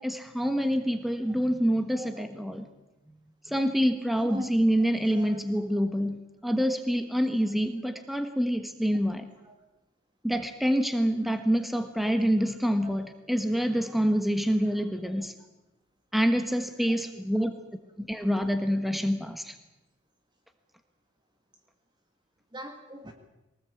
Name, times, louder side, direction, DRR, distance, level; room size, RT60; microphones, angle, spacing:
voice 1, 0.0-2.6 3.5-9.2 10.2-15.3 16.1-17.5 18.0-19.6, equal, ahead, 7 dB, 1.3 m, -26 dB
voice 2, 1.9-2.3 4.1-5.4 9.4-9.6 11.3-11.7 12.0-12.1 12.8-12.9 14.6-14.7 15.0-15.1 16.8-17.0 17.3-17.5 22.5-23.1, equal, 20° right, 4 dB, 1.8 m, -42 dB
23.0 x 19.0 x 8.5 m, 0.99 s
head